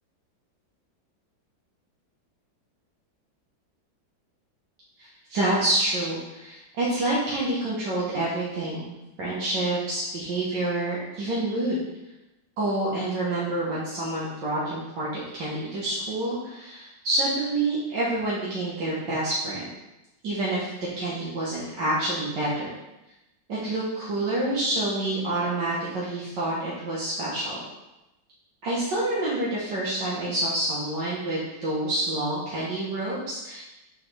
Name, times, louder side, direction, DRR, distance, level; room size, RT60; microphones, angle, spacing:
voice 1, 5.3-11.8 12.6-15.1 15.3-19.6 20.2-20.7 21.0-22.7 23.5-27.6 28.6-33.6, right 1 dB, 70° right, -7 dB, 1.8 m, -27 dB
6.3 x 5.6 x 3.3 m, 0.96 s
omnidirectional pair, 2.0 m